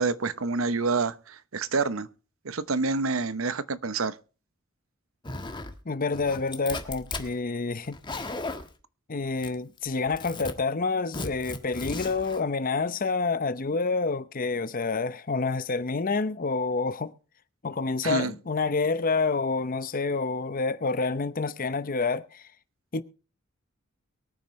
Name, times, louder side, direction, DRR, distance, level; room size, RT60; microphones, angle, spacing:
voice 1, 0.0-2.1 2.4-4.2 18.0-18.3, right 4 dB, 80° right, 0.9 m, -27 dB
Zipper (clothing), 5.2-5.8 6.1-7.3 7.8-8.7 9.4-9.8 10.1-10.5 11.1-12.4, left 3 dB, 25° left, 1.5 m, -36 dB
voice 2, 5.9-8.0 9.1-17.1 17.6-22.4 22.9-23.0, left 4 dB, 45° left, 0.8 m, -28 dB
23.0 x 9.1 x 3.1 m
head